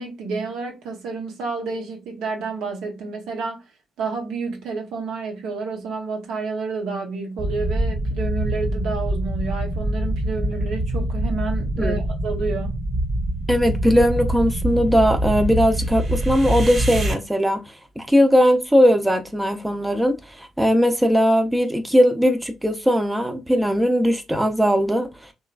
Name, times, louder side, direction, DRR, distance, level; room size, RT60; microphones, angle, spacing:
voice 1, 0.0-3.6 4.0-12.7, right 4 dB, 75° right, 0.8 m, -29 dB
sound 1, 7.4-17.1, right 1 dB, 45° right, 1.4 m, -25 dB
voice 2, 13.5-17.6 18.0-25.1, equal, 10° right, 0.6 m, -19 dB
2.9 x 2.3 x 2.4 m
hypercardioid pair, 50°, 0 cm